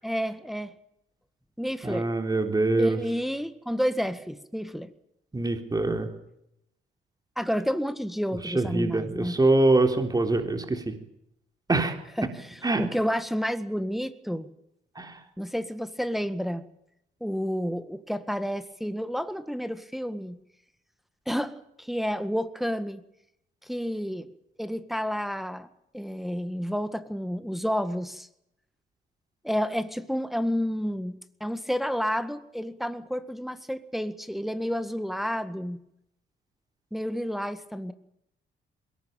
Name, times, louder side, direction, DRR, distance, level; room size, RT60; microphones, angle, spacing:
voice 1, 0.0-0.7 1.6-2.1 2.8-4.9 7.4-9.4 12.2-14.5 15.4-16.6 17.2-20.4 21.3-23.0 23.6-24.3 24.6-25.7 25.9-28.3 29.4-35.8 36.9-37.9, equal, ahead, 10 dB, 1.8 m, -30 dB
voice 2, 1.8-3.0 5.3-6.1 8.4-10.9 11.7-12.0 12.6-12.8 15.0-15.2, right 2 dB, 20° right, 6 dB, 3.7 m, -24 dB
22.0 x 18.5 x 9.0 m, 0.78 s
cardioid pair, 90°, 20 cm